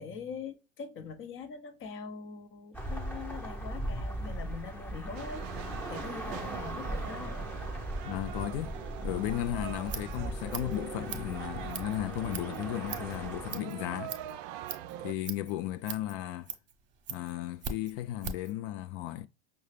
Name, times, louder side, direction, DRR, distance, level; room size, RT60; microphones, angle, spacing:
voice 1, 0.0-7.4, left 5 dB, 35° left, 0.8 m, -43 dB
sound 1, 2.7-13.6, right 1 dB, 5° left, 0.9 m, -39 dB
sound 2, 5.1-15.1, right 12 dB, 50° right, 0.4 m, -43 dB
voice 2, 8.0-8.8 9.0-14.2 15.0-16.5 17.1-19.3, left 14 dB, 55° left, 0.5 m, -35 dB
Scissors, 9.6-18.6, right 6 dB, 35° right, 0.9 m, -43 dB
5.5 x 2.3 x 3.2 m
hypercardioid pair, 85°, 34 cm